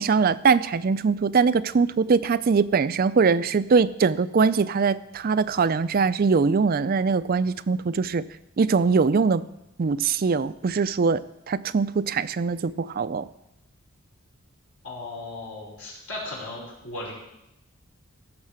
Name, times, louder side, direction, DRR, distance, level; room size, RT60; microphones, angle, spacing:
voice 1, 0.0-8.2 8.6-9.4 9.8-11.2 11.5-13.3, right 5 dB, 45° right, 14 dB, 0.4 m, -22 dB
voice 2, 14.8-17.1, left 2 dB, 75° left, -3 dB, 5.3 m, -36 dB
15.5 x 6.5 x 7.5 m, 0.87 s
head